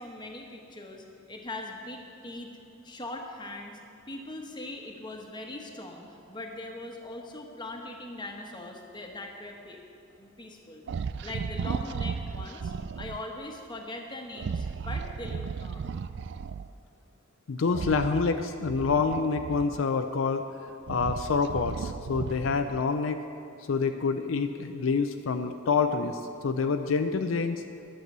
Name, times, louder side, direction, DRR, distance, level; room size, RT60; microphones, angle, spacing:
voice 1, 0.0-2.5 2.8-3.8 4.1-9.8 10.2-10.8 11.2-15.9, left 2 dB, 20° left, 2 dB, 1.1 m, -41 dB
sound 1, 10.9-13.2 14.3-16.7 17.7-20.0 20.6-22.9, right 5 dB, 60° right, 0.3 m, -35 dB
voice 2, 17.5-20.4 20.9-23.2 23.7-27.6, left 4 dB, 75° left, 7 dB, 0.5 m, -27 dB
11.0 x 7.6 x 6.7 m, 2.7 s
head